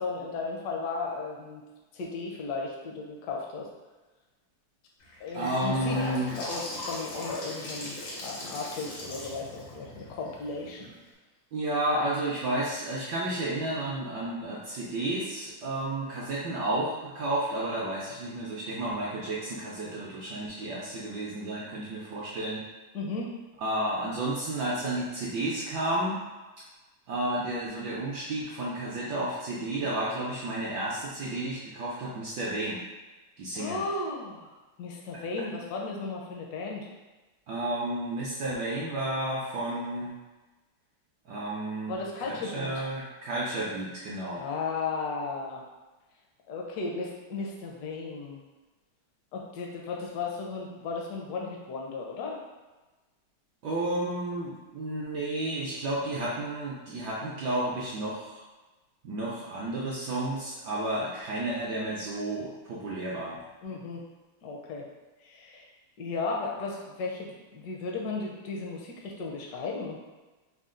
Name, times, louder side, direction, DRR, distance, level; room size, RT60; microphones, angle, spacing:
voice 1, 0.0-1.6 1.9-3.7 5.2-6.1 6.3-10.9 22.9-23.3 33.5-34.5 34.8-36.9 41.9-42.7 44.3-45.6 46.5-48.4 49.3-52.4 63.6-64.0 64.4-64.9 65.2-65.7 66.0-70.0, left 4 dB, 70° left, -1 dB, 1.0 m, -35 dB
Gurgling / Sink (filling or washing) / Bathtub (filling or washing), 5.0-11.1, left 1 dB, 90° left, 1.9 m, -39 dB
voice 2, 5.3-6.4 11.5-22.6 23.6-26.2 27.1-32.8 33.4-33.8 37.5-40.1 41.3-44.5 53.6-58.4 59.0-63.4, right 1 dB, 75° right, -5 dB, 1.0 m, -32 dB
4.1 x 2.2 x 3.7 m, 1.2 s
omnidirectional pair, 2.4 m